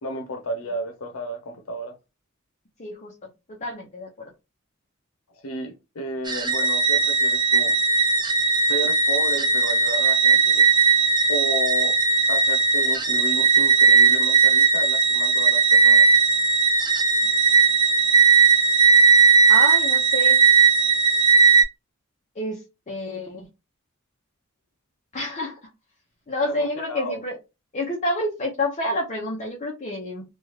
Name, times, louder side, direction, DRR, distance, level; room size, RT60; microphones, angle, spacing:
voice 1, 0.0-1.9 5.4-7.7 8.7-10.7 11.3-11.9 12.3-16.0 26.4-27.2, equal, 90° left, 0.7 m, -32 dB
voice 2, 2.8-3.1 3.6-4.3 19.5-20.4 22.4-22.6 22.9-23.4 25.1-25.6 26.3-27.4 27.7-30.2, left 1 dB, 35° left, 0.7 m, -28 dB
sound 1, 6.3-21.6, right 5 dB, 20° right, 0.5 m, -18 dB
3.2 x 2.3 x 3.0 m
head